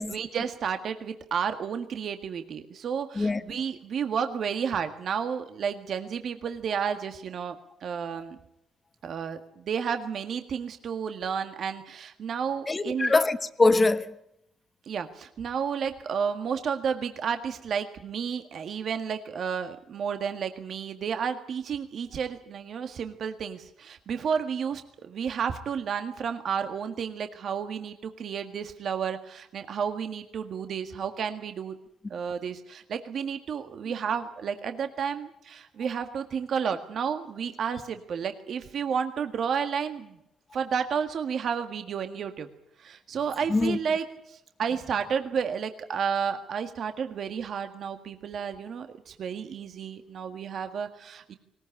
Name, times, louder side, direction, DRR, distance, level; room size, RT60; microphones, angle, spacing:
voice 1, 0.0-7.6 7.8-8.4 9.0-13.1 14.8-31.8 32.1-40.2 40.5-42.5 42.8-51.3, right 7 dB, 60° right, 1.8 m, -31 dB
voice 2, 12.7-14.1 43.5-43.8, left 3 dB, 25° left, 1.3 m, -23 dB
20.0 x 19.0 x 9.8 m
cardioid pair, 90°, 0 cm